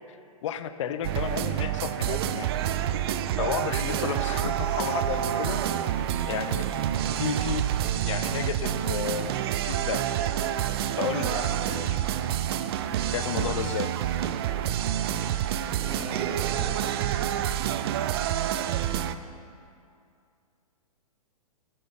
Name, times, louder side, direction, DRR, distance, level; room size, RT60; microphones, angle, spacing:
voice 1, 0.4-2.5 3.4-6.7 7.2-7.7 8.0-9.3 9.6-10.0 11.0-12.0 13.1-13.9, left 8 dB, 55° left, 11 dB, 0.5 m, -32 dB
sound 1, 1.0-19.1, right 11 dB, 40° right, 0.4 m, -28 dB
Wind instrument woodwind instrument, 2.8-6.9, left 6 dB, 5° left, 1.8 m, -49 dB
voice 2, 15.8-16.9, right 2 dB, 25° right, -5 dB, 1.2 m, -38 dB
7.7 x 6.5 x 5.7 m, 2.4 s
figure-of-eight pair, 120°, 19 cm